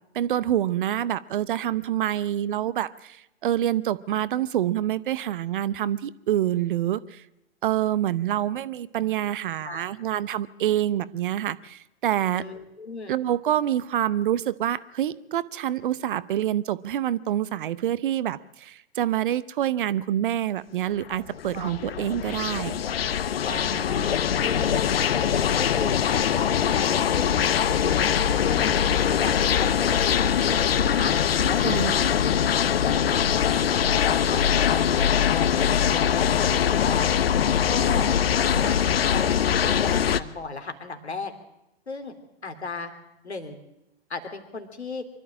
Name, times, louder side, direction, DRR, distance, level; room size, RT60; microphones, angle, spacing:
voice 1, 0.1-7.2 7.6-12.4 13.1-22.8 31.7-31.9, right 11 dB, 50° right, 18 dB, 0.9 m, -26 dB
voice 2, 12.3-13.1 21.5-21.7 23.4-28.1 28.5-31.1 31.5-33.2 33.5-37.1 37.7-38.1 38.4-41.3 41.9-42.1 42.4-42.9 43.2-43.6 44.1-45.0, left 4 dB, 75° left, 7 dB, 3.1 m, -35 dB
sound 1, 21.1-40.2, left 8 dB, 60° left, 1.0 m, -22 dB
24.5 x 13.0 x 8.6 m, 0.87 s
figure-of-eight pair, 105°, 33 cm